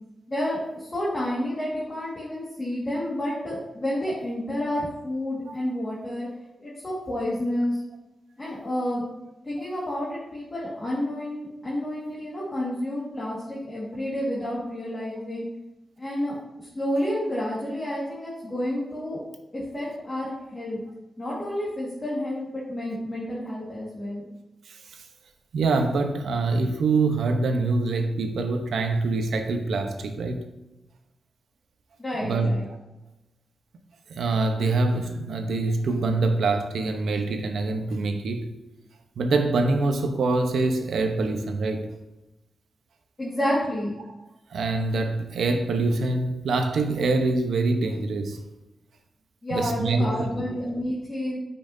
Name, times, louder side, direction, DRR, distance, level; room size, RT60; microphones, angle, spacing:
voice 1, 0.3-6.3 6.6-7.8 8.4-9.0 9.4-15.5 16.0-19.2 19.5-20.8 21.2-24.3 32.0-32.7 43.2-43.9 49.4-51.4, left 1 dB, 20° left, 1.8 m, -30 dB
voice 2, 24.7-25.0 25.5-30.4 32.2-32.5 34.1-38.5 39.2-41.9 44.5-48.4 49.5-50.3, right 3 dB, 85° right, 0.9 m, -25 dB
8.8 x 5.7 x 2.7 m
wide cardioid pair, 150°, 0 cm